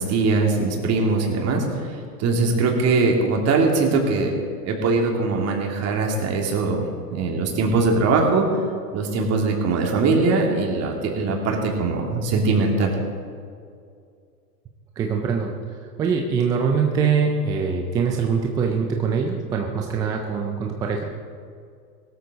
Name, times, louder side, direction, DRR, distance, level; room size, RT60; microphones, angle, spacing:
voice 1, 0.0-1.9 2.2-4.3 4.6-6.9 7.1-8.4 8.9-12.9, right 3 dB, 30° right, 0 dB, 3.0 m, -21 dB
voice 2, 15.0-15.5 16.0-21.0, right 6 dB, 10° right, 2 dB, 0.3 m, -23 dB
18.0 x 13.0 x 4.0 m, 2.3 s
hypercardioid pair, 120°, 48 cm